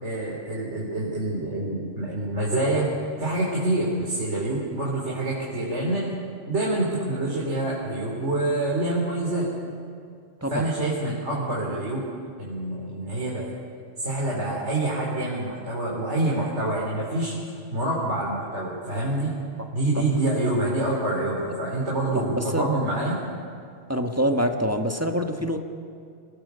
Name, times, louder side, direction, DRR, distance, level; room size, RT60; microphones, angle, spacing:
voice 1, 0.0-2.9 3.2-6.1 6.5-9.5 10.5-12.0 12.4-13.5 14.0-17.4 17.7-19.3 19.7-23.2, right 2 dB, 70° right, -4 dB, 3.9 m, -26 dB
voice 2, 22.1-22.6 23.9-25.6, equal, 15° right, 4 dB, 1.4 m, -25 dB
26.5 x 19.0 x 6.9 m, 2.4 s
omnidirectional pair, 1.2 m